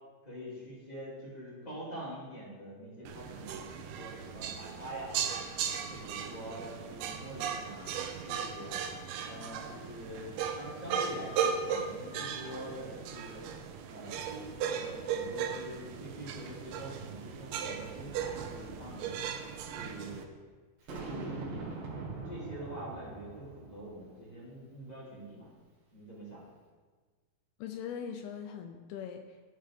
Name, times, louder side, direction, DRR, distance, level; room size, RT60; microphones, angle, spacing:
voice 1, 0.2-5.2 5.9-7.8 8.3-8.7 9.2-13.5 13.9-19.3 19.7-20.2 20.8-21.8 22.2-25.5 25.9-26.4, equal, 15° left, -6 dB, 1.4 m, -45 dB
sound 1, 3.1-20.2, right 7 dB, 80° right, 2.6 m, -37 dB
Boom, 20.9-24.2, right 3 dB, 60° right, 3.1 m, -42 dB
voice 2, 27.6-29.5, left 7 dB, 80° left, 5 dB, 2.4 m, -41 dB
12.0 x 5.0 x 4.9 m, 1.4 s
omnidirectional pair, 4.6 m